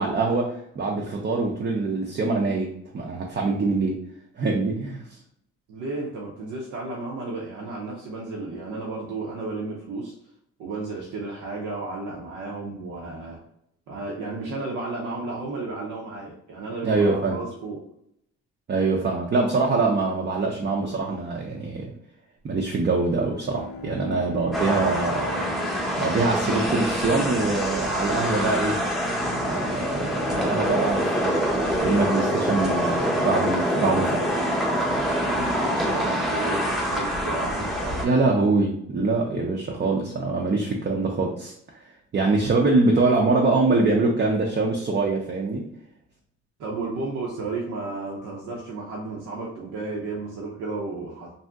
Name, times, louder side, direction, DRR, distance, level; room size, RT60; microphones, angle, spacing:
voice 1, 0.0-4.0 4.4-5.0 16.8-17.4 18.7-21.9 22.4-25.4 26.0-28.8 29.3-31.4 31.8-34.4 38.0-41.8 42.1-45.6, right 3 dB, 35° right, 0 dB, 0.5 m, -24 dB
voice 2, 5.7-10.1 10.6-13.4 13.9-17.8 24.1-24.2 35.2-38.2 46.6-51.3, right 3 dB, 75° right, -2 dB, 0.7 m, -33 dB
Bowed string instrument, 22.9-27.5, left 3 dB, 50° left, 0.6 m, -40 dB
sound 1, 24.5-38.0, equal, ahead, 0.7 m, -25 dB
2.6 x 2.0 x 3.4 m, 0.72 s
cardioid pair, 90°, 30 cm